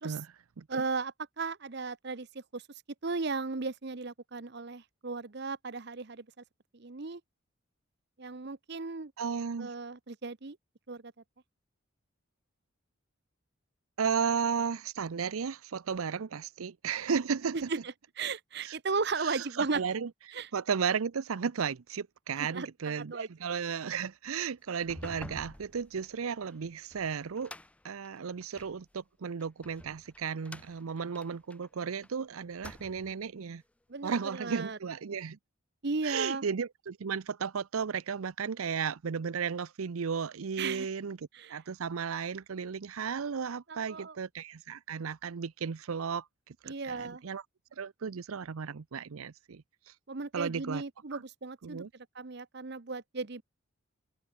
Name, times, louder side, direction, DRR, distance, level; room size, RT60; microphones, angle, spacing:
voice 1, 0.0-0.8 9.2-9.7 14.0-17.7 18.6-18.8 19.2-27.5 27.8-33.6 34.0-35.4 36.0-41.2 41.5-47.4 47.7-49.9 50.3-50.8 51.1-51.2 51.6-51.9, right 6 dB, 85° right, 0.6 m, -34 dB
voice 2, 0.7-2.6 3.0-6.2 6.7-7.2 8.2-9.1 9.6-10.6 10.9-11.1 17.5-17.8 18.2-19.8 20.3-20.5 22.4-23.3 33.9-34.8 35.8-36.5 40.6-40.9 41.3-41.6 43.7-44.1 46.7-47.2 50.1-53.4, right 4 dB, 50° right, 0.8 m, -36 dB
sound 1, 24.7-28.8 29.4-32.1 32.5-33.2, left 1 dB, 5° left, 0.4 m, -49 dB
open air
head